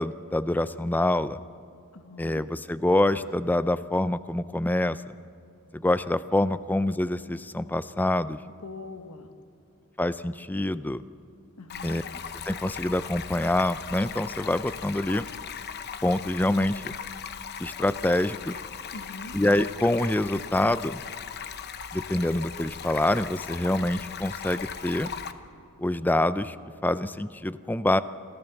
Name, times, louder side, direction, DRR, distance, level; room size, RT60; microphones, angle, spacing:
voice 1, 0.0-1.4 2.2-5.0 5.7-8.4 10.0-11.0 11.8-12.0 12.5-15.3 16.0-16.9 17.6-18.6 19.3-21.0 21.9-25.1 25.8-26.6 26.8-28.0, left 1 dB, 10° left, 14 dB, 0.4 m, -26 dB
voice 2, 1.9-2.4 8.6-9.3 11.6-12.0 18.9-19.4, left 3 dB, 80° left, 8 dB, 1.4 m, -42 dB
Stream, 11.7-25.3, left 7 dB, 50° left, 0.9 m, -38 dB
27.5 x 14.0 x 7.1 m, 2.4 s
head